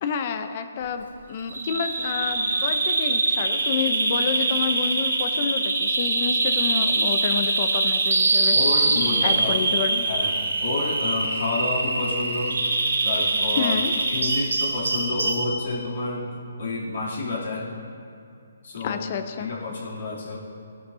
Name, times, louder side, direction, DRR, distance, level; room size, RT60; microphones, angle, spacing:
voice 1, 0.0-8.6 9.2-10.1 13.6-13.9 18.8-19.5, left 7 dB, 40° left, 8 dB, 0.7 m, -29 dB
Bird vocalization bird call bird song, 1.5-15.5, right 3 dB, 90° right, 2.6 m, -23 dB
voice 2, 8.5-9.7 10.1-12.6 13.0-17.7 18.6-19.0 19.4-20.4, left 2 dB, 65° left, -5 dB, 3.1 m, -29 dB
17.5 x 11.5 x 2.8 m, 2.4 s
hypercardioid pair, 155°, 0 cm